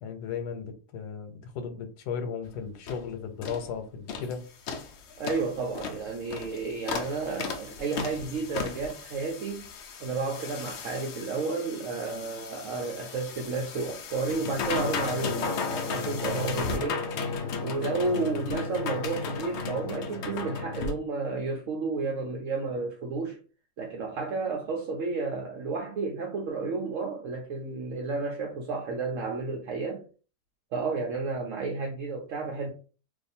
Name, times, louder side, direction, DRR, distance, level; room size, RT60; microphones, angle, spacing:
voice 1, 0.0-4.5, left 6 dB, 85° left, 1.2 m, -36 dB
sound 1, 2.5-2.6 2.9-3.1 3.4-3.7 4.1-4.3 4.7-20.9, left 5 dB, 65° left, 0.7 m, -35 dB
voice 2, 5.2-9.7 10.0-17.0 17.6-23.4 23.8-30.0 30.7-32.7, right 4 dB, 65° right, 0.9 m, -32 dB
2.6 x 2.4 x 4.1 m
omnidirectional pair, 1.7 m